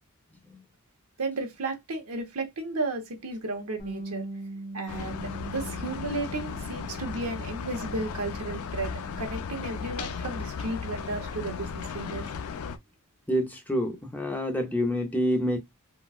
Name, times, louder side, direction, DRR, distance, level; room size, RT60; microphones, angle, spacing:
voice 1, 1.2-4.3 4.7-12.3, right 2 dB, 70° right, 0.8 m, -34 dB
Bass guitar, 3.8-10.0, right 2 dB, 35° left, 1.3 m, -42 dB
sound 1, 4.9-12.8, left 5 dB, 65° left, 0.4 m, -36 dB
voice 2, 13.3-15.6, equal, 10° left, 0.6 m, -27 dB
3.8 x 2.3 x 2.3 m
head